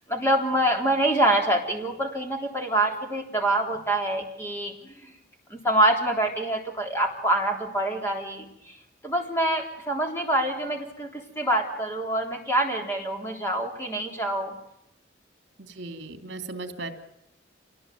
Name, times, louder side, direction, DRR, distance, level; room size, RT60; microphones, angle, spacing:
voice 1, 0.1-5.1 5.5-8.8 9.0-14.5, right 1 dB, 15° left, 2 dB, 3.7 m, -26 dB
voice 2, 15.6-16.9, right 3 dB, 65° right, 7 dB, 2.9 m, -37 dB
26.5 x 19.5 x 9.4 m, 0.80 s
head